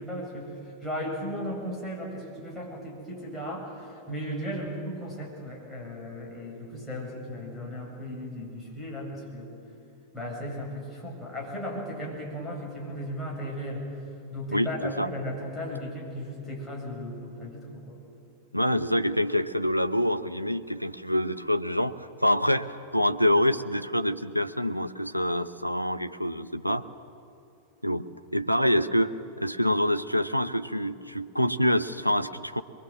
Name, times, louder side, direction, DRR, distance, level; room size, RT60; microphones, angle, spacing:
voice 1, 0.0-9.5 10.1-13.9 14.3-18.0, equal, 5° left, -4 dB, 7.8 m, -36 dB
voice 2, 14.5-15.1 18.5-26.8 27.8-28.1 28.3-32.6, equal, 90° right, 10 dB, 0.7 m, -26 dB
23.5 x 22.0 x 7.7 m, 2.6 s
figure-of-eight pair, 90°, 0 cm